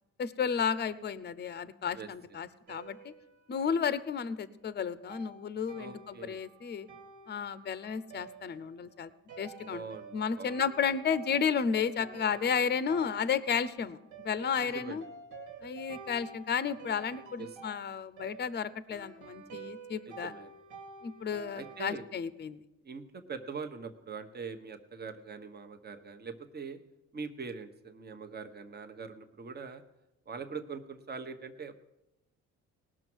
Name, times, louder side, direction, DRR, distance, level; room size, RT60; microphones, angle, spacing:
voice 1, 0.2-3.1 3.5-6.9 7.3-9.1 9.4-9.8 10.1-14.0 14.2-15.0 15.6-20.3 21.0-22.6, left 7 dB, 35° left, 15 dB, 0.7 m, -32 dB
sound 1, 2.7-4.2 5.1-21.9, right 4 dB, 85° right, 2.4 m, -50 dB
voice 2, 5.7-6.4 9.7-10.6 14.6-15.0 17.4-17.6 20.1-20.5 21.5-22.0 22.8-26.8 27.1-29.8 30.3-31.7, right 5 dB, 35° right, 7 dB, 1.1 m, -42 dB
18.5 x 6.2 x 6.2 m, 0.92 s
cardioid pair, 90°, 30 cm